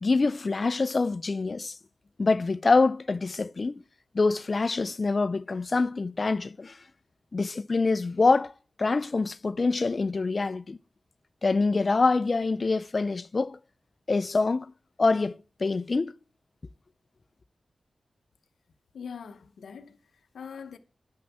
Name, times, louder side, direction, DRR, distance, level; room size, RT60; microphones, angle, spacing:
voice 1, 0.0-1.8 2.2-3.8 4.1-6.8 7.3-8.5 8.8-10.8 11.4-13.6 14.1-14.7 15.0-16.1, left 3 dB, 50° left, 0.4 m, -25 dB
voice 2, 18.9-20.8, left 6 dB, 90° left, 0.8 m, -43 dB
9.5 x 6.1 x 7.2 m
cardioid pair, 50°, 0 cm